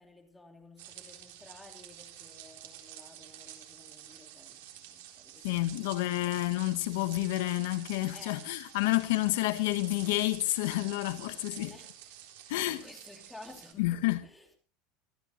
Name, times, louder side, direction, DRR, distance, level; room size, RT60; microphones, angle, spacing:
voice 1, 0.0-6.3 8.1-8.4 8.8-9.2 9.6-9.7 11.1-14.5, left 2 dB, 5° left, 2.9 m, -54 dB
sound 1, 0.8-13.7, right 11 dB, 90° right, 3.9 m, -49 dB
voice 2, 5.4-11.7 12.5-12.8 13.8-14.2, left 18 dB, 75° left, 1.2 m, -29 dB
25.0 x 13.0 x 3.1 m
cardioid pair, 170°, 0 cm